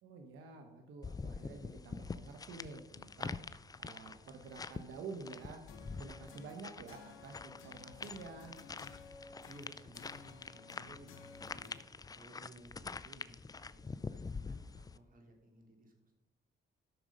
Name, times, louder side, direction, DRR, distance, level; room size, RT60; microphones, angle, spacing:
voice 1, 0.0-8.6, right 4 dB, 85° right, 5 dB, 1.1 m, -50 dB
sound 1, 1.0-15.0, left 4 dB, 20° left, 0.4 m, -46 dB
sound 2, 5.7-11.8, left 5 dB, 90° left, 1.2 m, -55 dB
voice 2, 9.5-11.7 12.1-16.1, right 1 dB, 45° right, 2 dB, 3.0 m, -58 dB
12.5 x 6.3 x 5.3 m, 1.0 s
cardioid pair, 90°, 20 cm